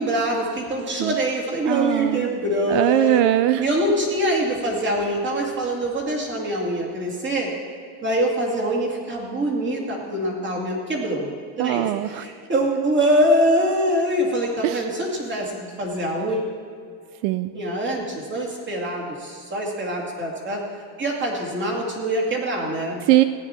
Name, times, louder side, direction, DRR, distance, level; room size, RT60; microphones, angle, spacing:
voice 1, 0.0-3.2 3.6-7.5 8.0-11.3 11.6-16.5 17.5-20.6 21.0-23.0, right 1 dB, 25° right, -1 dB, 2.3 m, -24 dB
voice 2, 1.7-2.3 2.7-3.6 11.6-12.3 14.6-14.8 17.2-17.5 23.1-23.2, right 14 dB, 75° right, 12 dB, 0.6 m, -20 dB
16.5 x 9.9 x 4.4 m, 2.3 s
cardioid pair, 150°, 45 cm